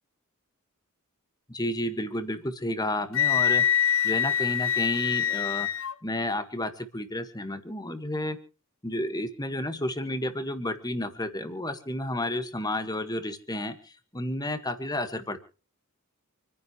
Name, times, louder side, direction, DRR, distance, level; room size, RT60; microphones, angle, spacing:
voice 1, 1.5-3.7 4.0-8.4 8.8-15.4, left 1 dB, 20° left, 9 dB, 1.7 m, -31 dB
Wind instrument woodwind instrument, 3.1-5.9, left 9 dB, 60° left, 1.0 m, -25 dB
28.0 x 10.0 x 3.2 m, 0.38 s
head